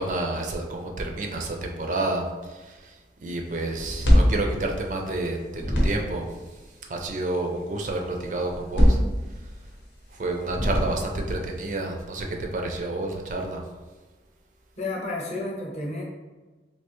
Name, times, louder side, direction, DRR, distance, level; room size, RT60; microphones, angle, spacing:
voice 1, 0.0-2.9 3.2-6.3 6.9-9.0 10.1-13.6, right 2 dB, 45° right, 2 dB, 0.4 m, -29 dB
sound 1, 3.8-5.2 5.5-6.3 8.5-9.7 10.4-11.3, equal, 90° left, 0.8 m, -22 dB
voice 2, 14.8-16.0, left 2 dB, 40° left, -3 dB, 0.8 m, -31 dB
3.3 x 2.8 x 3.0 m, 1.3 s
head